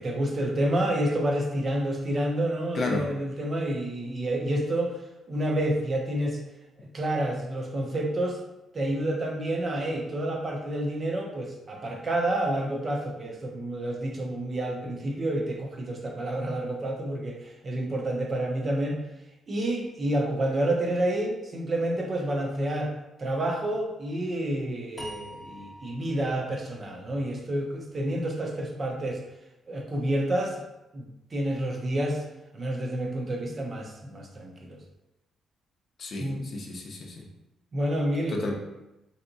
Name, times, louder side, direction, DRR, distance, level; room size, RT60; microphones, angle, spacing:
voice 1, 0.0-5.0 5.3-6.4 6.8-8.4 8.7-19.0 19.5-22.9 23.2-29.2 29.7-30.6 30.9-32.2 32.5-34.8 36.2-36.5 37.7-38.4, right 1 dB, 30° right, 1 dB, 0.5 m, -29 dB
voice 2, 2.7-3.1 36.0-37.3 38.3-38.5, left 3 dB, 45° left, 0 dB, 0.6 m, -32 dB
sound 1, 25.0-28.2, equal, 5° left, 0.7 m, -46 dB
3.4 x 2.7 x 2.6 m, 0.92 s
cardioid pair, 130°, 0 cm